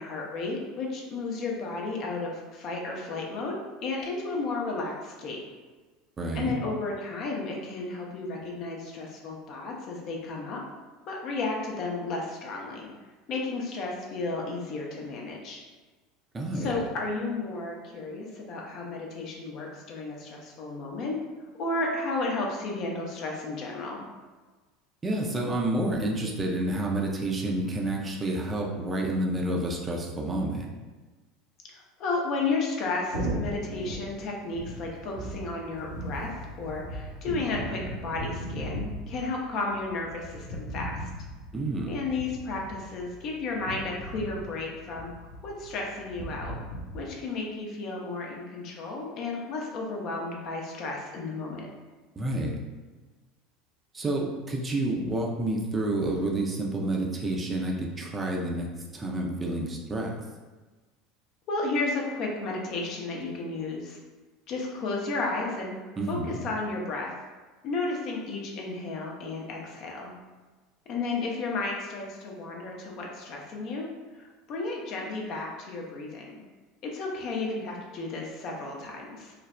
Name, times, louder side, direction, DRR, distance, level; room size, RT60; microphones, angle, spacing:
voice 1, 0.0-3.6 3.8-5.4 6.3-10.6 11.0-12.9 13.3-15.6 16.5-21.2 21.6-24.1 31.7-36.3 36.6-41.1 41.9-46.6 46.9-51.7 61.5-64.0 64.5-65.7 66.1-67.1 67.6-70.1 70.9-73.9 74.1-76.4 76.8-79.3, left 3 dB, 50° left, -1 dB, 0.5 m, -33 dB
voice 2, 6.2-6.6 16.3-16.8 25.0-30.7 41.5-41.9 52.2-52.6 53.9-58.7 58.9-60.1 66.0-66.4, right 1 dB, 25° right, -1 dB, 0.5 m, -29 dB
sound 1, 33.1-47.0, equal, 85° right, 0.7 m, -38 dB
3.2 x 2.0 x 2.4 m, 1.3 s
figure-of-eight pair, 75°, 0 cm